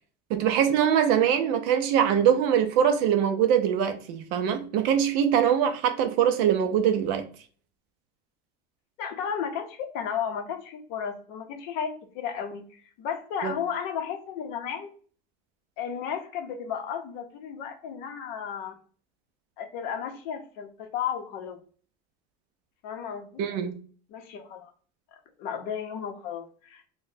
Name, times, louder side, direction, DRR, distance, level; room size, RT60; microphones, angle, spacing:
voice 1, 0.3-7.3 13.4-13.5 23.4-23.8, right 9 dB, 45° right, 0.4 m, -23 dB
voice 2, 9.0-14.9 15.8-18.8 19.6-21.6 22.8-23.4 24.1-24.7 25.4-26.9, left 7 dB, 50° left, 0.6 m, -34 dB
3.9 x 2.1 x 2.6 m
cardioid pair, 165°, 21 cm